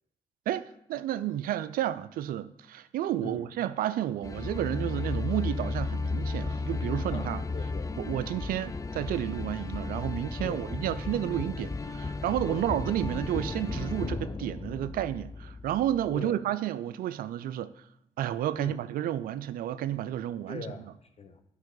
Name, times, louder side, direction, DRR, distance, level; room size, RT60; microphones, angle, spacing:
voice 1, 0.5-7.4 8.0-17.7 18.2-20.7, right 12 dB, 80° right, 0.4 m, -31 dB
sound 1, 4.2-16.2, left 3 dB, 25° left, 0.5 m, -34 dB
voice 2, 7.1-7.9 10.4-10.6 12.5-12.7 16.1-16.4 18.6-18.8 20.5-21.4, left 4 dB, 45° left, 1.1 m, -41 dB
10.5 x 5.4 x 3.9 m
supercardioid pair, 50°, 15 cm